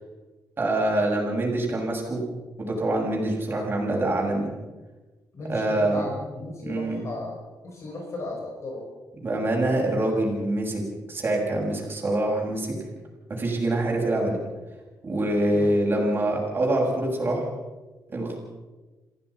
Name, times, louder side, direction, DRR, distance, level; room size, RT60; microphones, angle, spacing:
voice 1, 0.6-2.2 2.6-4.5 5.5-6.1 6.6-7.0 9.2-10.8 11.1-12.7 13.4-14.4 15.0-17.4 18.1-18.4, right 1 dB, 30° right, -1 dB, 7.5 m, -25 dB
voice 2, 5.3-7.4 7.6-8.8 15.5-15.8, left 2 dB, 45° left, 0 dB, 5.5 m, -35 dB
27.0 x 16.5 x 6.0 m, 1.2 s
cardioid pair, 120°, 7 cm